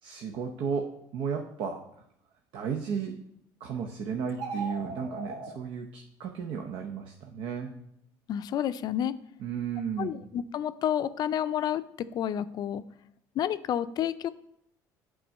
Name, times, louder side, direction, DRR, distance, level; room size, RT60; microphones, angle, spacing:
voice 1, 0.0-1.9 2.5-3.2 3.6-7.7 9.4-10.1, right 6 dB, 65° right, 4 dB, 0.8 m, -34 dB
sound 1, 4.3-5.5, right 4 dB, 80° right, 1.9 m, -37 dB
voice 2, 8.3-9.1 10.0-12.8 13.4-14.3, left 10 dB, 50° left, 13 dB, 0.4 m, -30 dB
8.6 x 3.8 x 5.3 m, 0.74 s
supercardioid pair, 100°, 9 cm